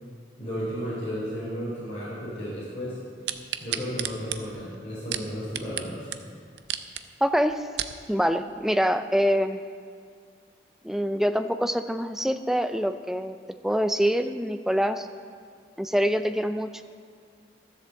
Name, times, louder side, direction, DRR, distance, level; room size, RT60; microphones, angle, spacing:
voice 1, 0.4-3.0 3.6-6.1, equal, 35° left, -11 dB, 4.1 m, -33 dB
sound 1, 3.3-5.9 6.1-6.2 6.6-7.0 7.5-8.0 8.6-8.7, right 11 dB, 70° right, 0.6 m, -32 dB
voice 2, 7.2-7.7 8.1-9.6 10.8-13.4 13.6-15.1 15.8-16.8, equal, ahead, 9 dB, 0.4 m, -25 dB
13.0 x 7.8 x 7.0 m, 2.1 s
head